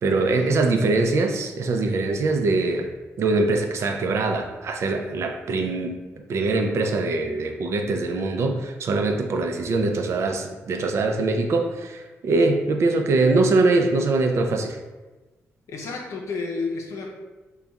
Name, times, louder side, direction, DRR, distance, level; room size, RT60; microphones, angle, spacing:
voice 1, 0.0-2.9 3.2-5.9 6.3-14.8, right 3 dB, 65° right, 4 dB, 0.5 m, -23 dB
voice 2, 15.7-17.1, left 4 dB, 75° left, -1 dB, 0.6 m, -30 dB
3.5 x 2.3 x 3.9 m, 1.2 s
cardioid pair, 80°, 5 cm